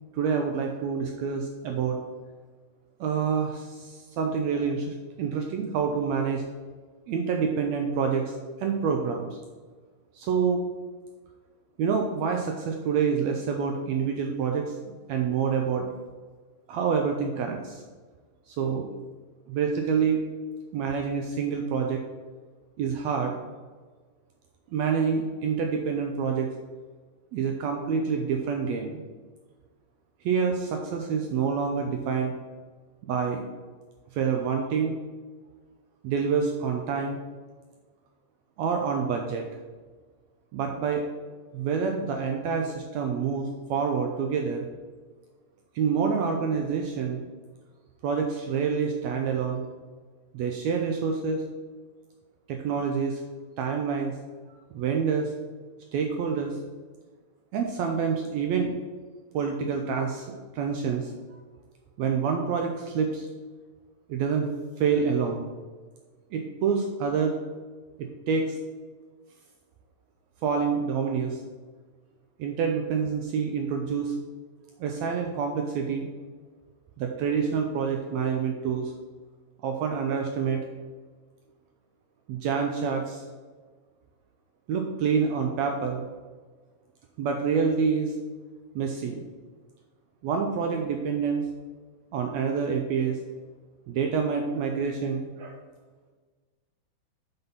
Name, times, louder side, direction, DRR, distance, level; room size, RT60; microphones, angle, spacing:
voice 1, 0.1-2.0 3.0-6.4 7.1-9.4 10.1-10.6 11.8-14.8 15.1-15.9 16.7-17.8 18.5-18.9 19.5-20.2 20.7-22.0 22.8-23.4 24.7-26.5 27.3-29.0 30.2-32.3 33.0-33.4 34.1-35.0 36.0-37.2 38.6-39.4 40.5-41.0 41.5-44.7 45.7-47.2 48.0-49.6 50.3-51.4 52.5-53.2 53.6-54.1 54.7-55.3 55.9-56.6 57.5-58.7 59.3-60.3 60.5-61.1 62.0-63.3 64.1-64.5 64.8-65.5 66.3-67.4 68.0-68.6 70.4-71.4 72.4-74.1 74.8-76.1 77.0-78.9 79.6-80.6 82.3-83.2 84.7-86.0 87.2-88.1 88.7-89.2 90.2-91.4 92.1-93.2 93.9-95.6, right 6 dB, 90° right, 3 dB, 1.5 m, -27 dB
6.0 x 5.3 x 5.5 m, 1.4 s
omnidirectional pair, 3.8 m